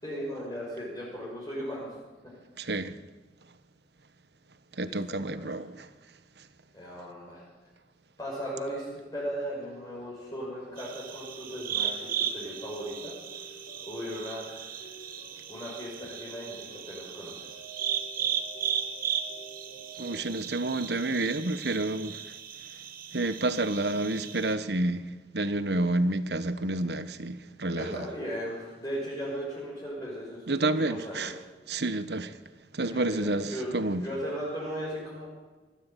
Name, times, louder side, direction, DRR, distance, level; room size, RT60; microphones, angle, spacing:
voice 1, 0.0-1.9 4.8-5.5 6.7-7.4 8.2-13.5 13.8-14.7 15.5-17.6 27.6-31.3 32.8-33.7 34.0-35.3, equal, 20° left, 6.0 m, -37 dB
voice 2, 2.6-2.9 4.8-5.9 20.0-22.2 23.1-28.1 30.5-31.3 31.7-32.3 32.7-34.1, right 2 dB, 70° right, 1.3 m, -29 dB
sound 1, 9.6-20.3, right 2 dB, 65° left, 5.1 m, -50 dB
sound 2, 10.8-24.5, right 9 dB, 50° right, 1.8 m, -36 dB
21.0 x 14.0 x 9.3 m
head